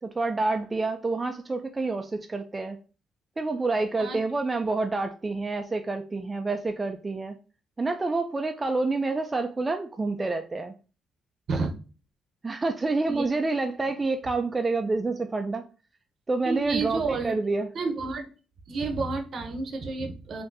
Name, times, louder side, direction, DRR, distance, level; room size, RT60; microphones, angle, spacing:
voice 1, 0.0-2.8 3.4-7.4 7.8-10.7 12.4-15.6 16.3-17.7, right 3 dB, 25° right, 5 dB, 0.3 m, -28 dB
voice 2, 16.4-17.3 17.7-18.3 18.7-20.4, right 3 dB, 55° right, 5 dB, 0.7 m, -30 dB
3.7 x 2.6 x 2.5 m, 0.35 s
cardioid pair, 90°, 0 cm